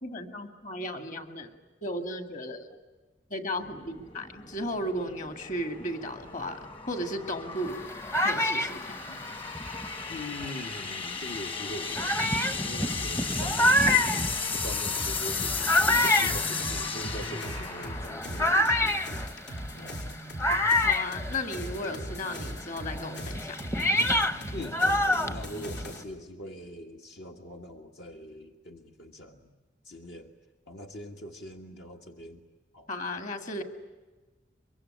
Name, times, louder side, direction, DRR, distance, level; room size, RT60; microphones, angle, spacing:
voice 1, 0.0-1.5 1.8-2.7 3.3-7.8 8.2-9.0 20.8-23.6 32.9-33.6, left 1 dB, 50° left, 7 dB, 2.3 m, -35 dB
sound 1, 3.6-19.0, left 5 dB, 30° left, 1.3 m, -35 dB
sound 2, 7.7-10.7 11.4-11.5 12.0-22.0 22.3-26.0, left 1 dB, 15° left, 0.8 m, -28 dB
voice 2, 9.1-9.4 10.1-19.3 19.7-20.2 24.5-29.5 29.8-30.3 30.7-32.4 32.7-32.9, left 1 dB, 70° left, 2 dB, 1.7 m, -42 dB
sound 3, 12.9-26.0, equal, 85° left, 5.6 m, -39 dB
24.0 x 23.5 x 9.9 m, 1.2 s
head